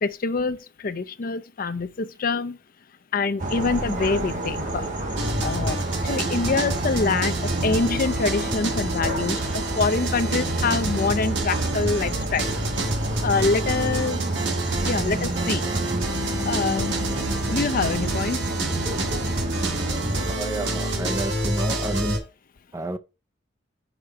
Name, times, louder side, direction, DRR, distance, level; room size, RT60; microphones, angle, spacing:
voice 1, 0.0-2.6 3.1-4.9 5.4-5.8 6.0-12.5 13.2-14.2 14.7-15.7 16.5-16.9 17.5-18.5, left 4 dB, 50° left, 0.5 m, -25 dB
sound 1, 3.4-20.4, right 1 dB, 45° right, 1.5 m, -30 dB
sound 2, 5.2-22.2, right 2 dB, 70° right, 1.6 m, -27 dB
voice 2, 20.3-22.2 22.7-23.0, right 1 dB, 15° right, 0.5 m, -30 dB
5.0 x 4.8 x 5.4 m
head